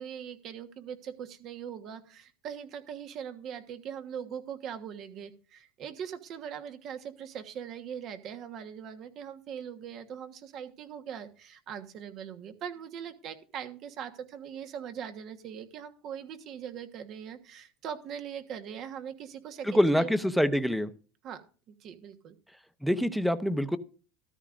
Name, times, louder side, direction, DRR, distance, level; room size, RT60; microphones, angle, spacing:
voice 1, 0.0-20.1 21.2-21.4 21.7-22.3, right 8 dB, 50° right, 8 dB, 1.3 m, -41 dB
voice 2, 19.7-20.9 22.8-23.8, equal, ahead, 12 dB, 0.8 m, -25 dB
13.5 x 13.0 x 2.5 m, 0.37 s
supercardioid pair, 105°, 0 cm